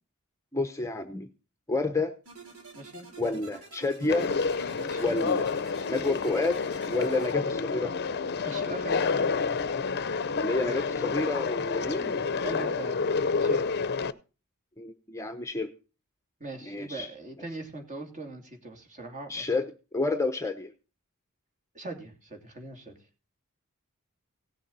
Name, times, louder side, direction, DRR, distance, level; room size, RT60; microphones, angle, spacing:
voice 1, 0.5-1.3 1.7-2.1 3.2-4.3 5.0-5.5 5.9-8.0 10.4-12.1 14.8-15.7 16.7-17.1 19.3-20.7, left 3 dB, 15° left, 7 dB, 0.8 m, -29 dB
sound 1, 2.3-7.3, equal, 85° right, 4.1 m, -47 dB
voice 2, 2.7-3.1 4.7-5.1 8.4-9.3 11.9-13.0 13.4-13.6 16.4-19.4 21.7-22.9, right 2 dB, 35° right, 4 dB, 2.8 m, -41 dB
Conversation, 4.1-14.1, left 5 dB, 50° left, 0.7 m, -29 dB
17.5 x 7.2 x 4.0 m, 0.32 s
head